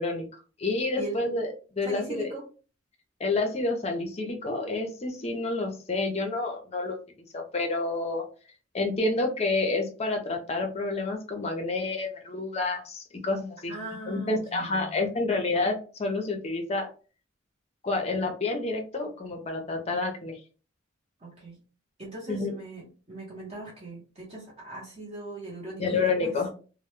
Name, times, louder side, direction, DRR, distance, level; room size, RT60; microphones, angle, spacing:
voice 1, 0.0-1.5 1.8-2.3 3.2-7.0 7.3-8.3 8.7-13.7 14.1-16.9 17.8-20.4 22.3-22.5 25.8-26.5, left 3 dB, 30° left, 4 dB, 0.5 m, -29 dB
voice 2, 1.0-1.3 1.8-2.4 13.7-15.0 21.2-21.6 22.0-26.4, right 2 dB, 30° right, -4 dB, 0.7 m, -40 dB
2.1 x 2.0 x 3.0 m, 0.36 s
head